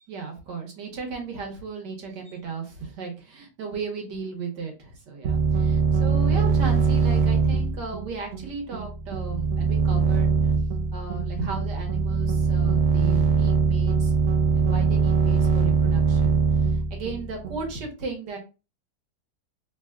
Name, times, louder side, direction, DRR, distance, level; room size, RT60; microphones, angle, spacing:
voice 1, 0.0-10.3 10.9-14.1 14.5-18.4, right 4 dB, 90° right, 1 dB, 1.8 m, -35 dB
sound 1, 5.2-17.7, right 5 dB, 65° right, 0.8 m, -22 dB
3.6 x 2.3 x 3.5 m, 0.30 s
omnidirectional pair, 1.8 m